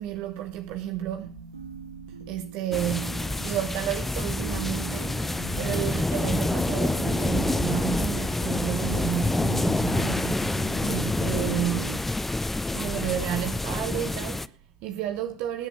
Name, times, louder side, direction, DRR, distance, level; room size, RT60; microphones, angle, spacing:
voice 1, 0.0-1.4 2.1-12.2 12.7-15.7, right 12 dB, 55° right, 1.1 m, -32 dB
sound 1, 1.2-12.0, right 5 dB, 85° right, 1.4 m, -42 dB
sound 2, 2.7-14.5, left 2 dB, 10° left, 0.6 m, -27 dB
19.0 x 8.2 x 5.9 m
figure-of-eight pair, 75°, 2 cm